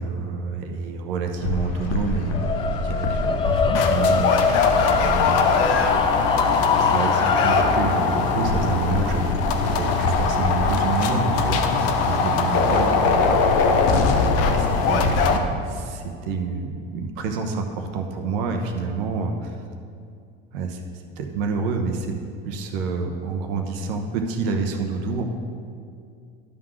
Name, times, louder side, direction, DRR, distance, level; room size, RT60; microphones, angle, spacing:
voice 1, 0.0-5.5 6.8-9.3 9.6-14.1 14.5-19.6 20.5-20.8 21.2-25.2, right 4 dB, 75° right, 3 dB, 1.0 m, -28 dB
sound 1, 1.4-15.4, left 4 dB, 55° left, 0.8 m, -21 dB
sound 2, 2.3-12.5, left 5 dB, 20° left, 0.4 m, -26 dB
11.0 x 3.8 x 6.3 m, 2.3 s
supercardioid pair, 100°, 29 cm